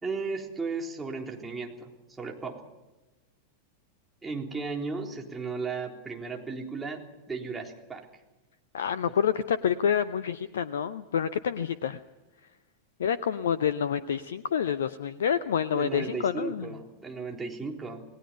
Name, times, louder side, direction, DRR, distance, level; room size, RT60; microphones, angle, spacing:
voice 1, 0.0-2.6 4.2-7.0 7.3-8.1 15.7-18.1, right 4 dB, 10° right, 0 dB, 3.7 m, -35 dB
voice 2, 8.7-12.0 13.0-16.7, left 8 dB, 65° left, 16 dB, 0.7 m, -28 dB
28.0 x 19.0 x 5.7 m, 1.1 s
figure-of-eight pair, 90°, 0 cm